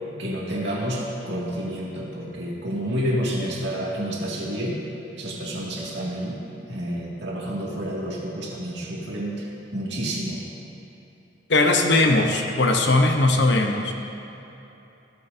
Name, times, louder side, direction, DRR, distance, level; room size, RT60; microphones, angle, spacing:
voice 1, 0.2-4.8 5.1-6.4 6.7-10.4, equal, 65° right, -5 dB, 2.1 m, -29 dB
voice 2, 11.5-13.9, left 2 dB, 65° left, 3 dB, 0.9 m, -19 dB
16.0 x 8.5 x 2.7 m, 2.9 s
head